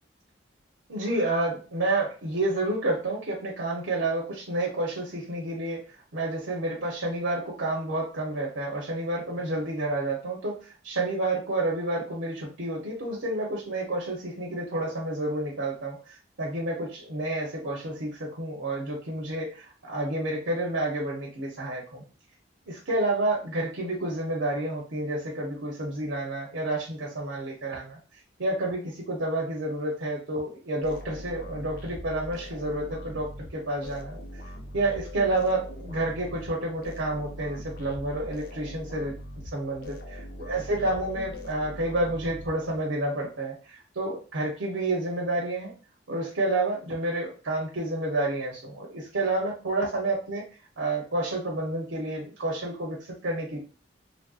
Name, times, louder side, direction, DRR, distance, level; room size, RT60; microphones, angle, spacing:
voice 1, 0.9-5.8 6.1-22.0 22.7-28.0 28.4-34.2 34.7-39.1 39.5-45.7 46.1-50.4 50.8-53.6, right 2 dB, 85° right, -2 dB, 0.8 m, -29 dB
sound 1, 30.8-43.0, left 1 dB, 50° left, 0.6 m, -41 dB
3.2 x 2.6 x 2.3 m, 0.36 s
head